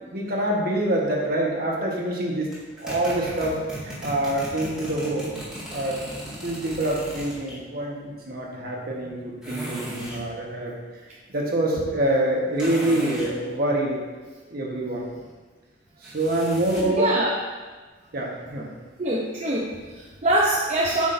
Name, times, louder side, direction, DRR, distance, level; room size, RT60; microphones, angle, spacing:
voice 1, 0.1-5.3 5.7-6.0 6.4-10.7 11.3-14.0 14.5-15.0 16.0-17.1 18.1-18.7, right 1 dB, 55° right, -2 dB, 1.3 m, -26 dB
sound 1, 2.5-7.6 9.4-10.2 12.6-13.3 16.0-17.0, equal, 5° right, 1.9 m, -36 dB
voice 2, 16.8-17.4 19.0-21.1, right 1 dB, 35° right, -3 dB, 0.6 m, -24 dB
8.4 x 6.1 x 2.6 m, 1.3 s
head